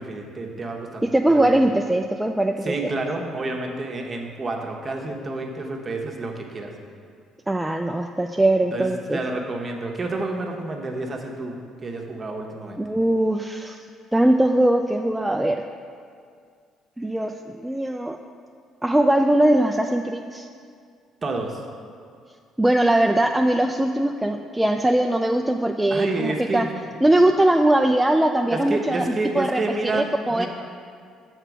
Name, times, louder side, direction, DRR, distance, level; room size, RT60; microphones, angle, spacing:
voice 1, 0.0-1.0 1.3-1.4 2.6-6.7 8.7-12.8 21.2-21.6 25.9-26.7 28.5-30.5, right 2 dB, 35° right, 1 dB, 1.0 m, -29 dB
voice 2, 1.0-2.9 7.5-9.2 12.8-13.8 14.1-15.6 17.0-18.2 18.8-20.5 22.6-26.7 27.0-29.0 29.3-29.6 29.9-30.5, right 1 dB, 10° right, 4 dB, 0.3 m, -21 dB
6.6 x 4.4 x 6.0 m, 2.2 s
supercardioid pair, 65°, 0 cm